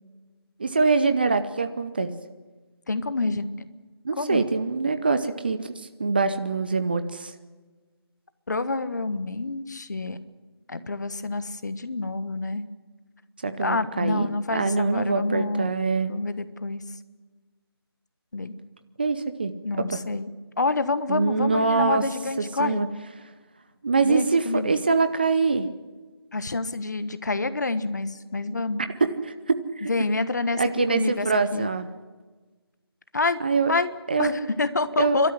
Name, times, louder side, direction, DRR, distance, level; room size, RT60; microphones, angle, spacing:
voice 1, 0.6-2.1 4.0-7.3 13.4-16.1 19.0-19.5 19.8-20.0 21.1-22.0 22.6-22.9 23.8-25.7 29.0-29.9 30.6-31.9 33.4-33.7 34.1-34.3 35.0-35.2, right 4 dB, 20° right, 10 dB, 0.7 m, -24 dB
voice 2, 2.9-3.7 4.2-4.4 8.5-10.2 10.7-12.6 13.6-15.7 16.1-16.8 18.3-18.5 19.6-20.3 20.6-22.8 24.0-24.7 26.3-28.8 29.8-30.6 30.9-31.3 31.5-31.7 33.1-33.4 33.7-33.9 34.2-35.3, left 3 dB, 45° left, 13 dB, 1.3 m, -27 dB
30.0 x 13.0 x 10.0 m, 1.3 s
figure-of-eight pair, 165°, 14 cm